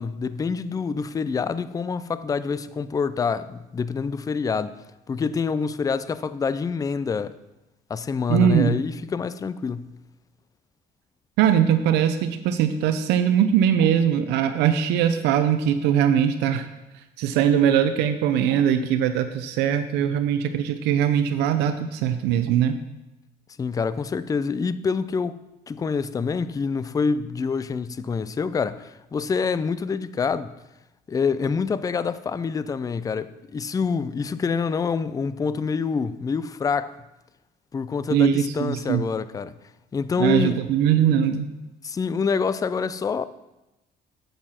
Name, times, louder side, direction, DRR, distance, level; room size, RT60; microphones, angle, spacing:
voice 1, 0.0-4.8 5.1-7.4 7.9-9.9 23.6-25.4 25.7-30.5 31.1-36.9 37.7-39.5 39.9-40.6 41.8-43.3, left 5 dB, 20° left, 0.4 m, -26 dB
voice 2, 8.3-8.8 11.4-16.6 17.2-22.8 38.1-39.1 40.2-41.5, right 9 dB, 90° right, 0.6 m, -21 dB
8.8 x 7.9 x 4.3 m
cardioid pair, 110°, 17 cm